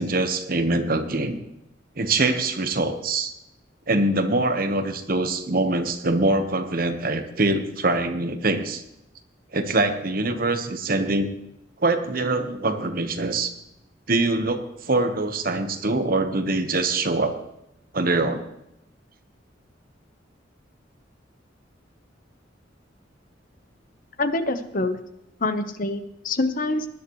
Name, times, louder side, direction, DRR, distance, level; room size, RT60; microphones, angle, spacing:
voice 1, 0.0-1.4 2.0-3.3 3.9-8.8 9.5-11.3 11.8-13.5 14.1-14.6 14.9-17.3 17.9-18.4, right 2 dB, 50° right, 8 dB, 1.1 m, -23 dB
voice 2, 24.2-25.0 25.4-26.9, left 2 dB, 45° left, 9 dB, 1.0 m, -25 dB
18.5 x 11.0 x 3.2 m, 0.83 s
head